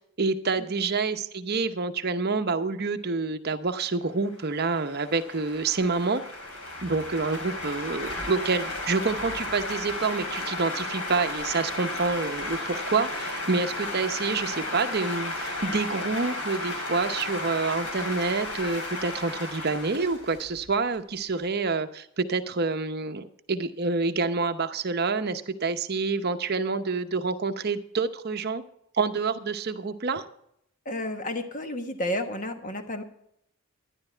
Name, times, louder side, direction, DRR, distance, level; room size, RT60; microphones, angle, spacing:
voice 1, 0.2-6.2 6.8-28.6 29.0-30.3, right 4 dB, 45° right, 8 dB, 0.8 m, -27 dB
sound 1, 4.3-21.0, left 2 dB, 90° left, 3.3 m, -34 dB
voice 2, 30.8-33.0, left 1 dB, 35° left, 7 dB, 1.3 m, -31 dB
12.0 x 11.0 x 4.5 m, 0.73 s
head